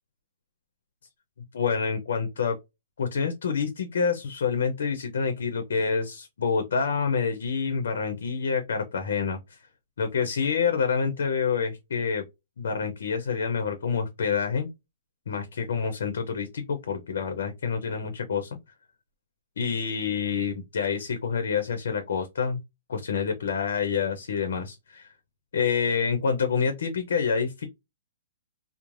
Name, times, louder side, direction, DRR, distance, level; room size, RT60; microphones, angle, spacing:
voice 1, 1.5-2.6 3.0-9.4 10.0-12.2 12.6-14.7 15.3-18.6 19.6-22.6 22.9-25.1 25.5-27.7, left 6 dB, 75° left, 0.6 m, -27 dB
3.1 x 2.0 x 2.5 m
hypercardioid pair, 165°, 0 cm